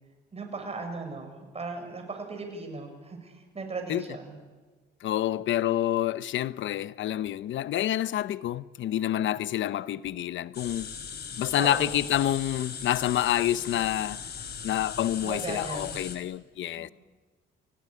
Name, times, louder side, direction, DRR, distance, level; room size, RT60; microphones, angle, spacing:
voice 1, 0.3-4.4 11.6-12.0 15.2-16.0 16.7-16.8, right 3 dB, 30° right, 6.9 m, -37 dB
voice 2, 5.0-10.9 11.4-14.2 14.6-16.9, left 12 dB, 75° left, 0.8 m, -28 dB
sound 1, 10.5-16.2, left 6 dB, 55° left, 3.9 m, -39 dB
29.5 x 17.5 x 9.9 m
cardioid pair, 90°, 20 cm